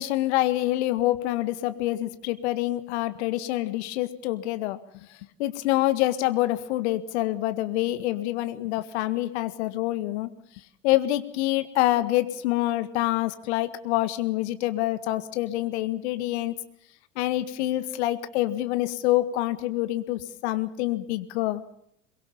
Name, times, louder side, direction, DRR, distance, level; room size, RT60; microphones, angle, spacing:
voice 1, 0.0-5.1 5.4-10.3 10.8-16.5 17.2-21.6, left 16 dB, 55° left, 12 dB, 1.8 m, -26 dB
23.0 x 22.5 x 7.2 m, 0.72 s
figure-of-eight pair, 80°, 40 cm